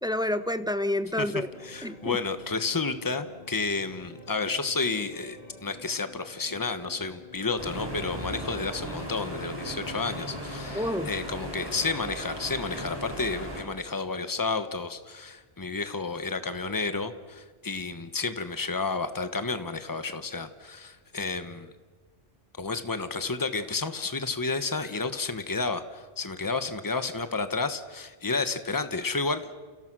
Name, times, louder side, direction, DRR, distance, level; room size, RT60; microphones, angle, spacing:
voice 1, 0.0-1.5 1.8-2.2 10.7-11.1, left 1 dB, 5° right, 11 dB, 0.9 m, -28 dB
sound 1, 1.4-13.4, left 1 dB, 35° left, 4.5 m, -51 dB
voice 2, 1.6-21.7 22.6-29.4, left 4 dB, 20° left, 10 dB, 1.2 m, -31 dB
sound 2, 7.6-13.6, equal, 20° right, 6.1 m, -37 dB
29.5 x 29.5 x 6.2 m, 1.4 s
omnidirectional pair, 1.1 m